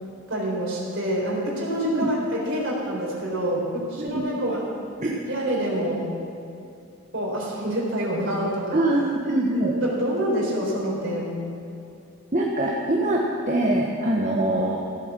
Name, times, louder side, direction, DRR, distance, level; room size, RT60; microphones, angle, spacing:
voice 1, 0.3-4.7 5.3-6.1 7.1-8.8 9.5-11.3, equal, 55° right, -4 dB, 4.1 m, -27 dB
voice 2, 4.0-4.3 5.0-5.2 8.7-9.7 12.3-14.8, right 1 dB, 35° right, -2 dB, 1.2 m, -23 dB
14.5 x 8.9 x 7.4 m, 2.7 s
head